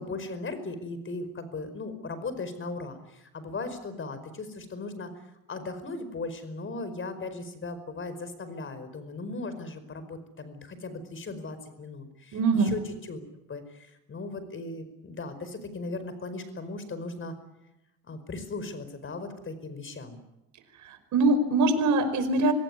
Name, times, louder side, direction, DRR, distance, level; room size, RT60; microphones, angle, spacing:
voice 1, 0.0-13.2 13.5-17.4 18.0-20.2, left 3 dB, 40° left, 12 dB, 5.1 m, -37 dB
voice 2, 12.3-12.8 20.8-22.5, right 3 dB, 65° right, 9 dB, 5.2 m, -23 dB
25.5 x 17.0 x 9.8 m, 0.93 s
cardioid pair, 90°, 32 cm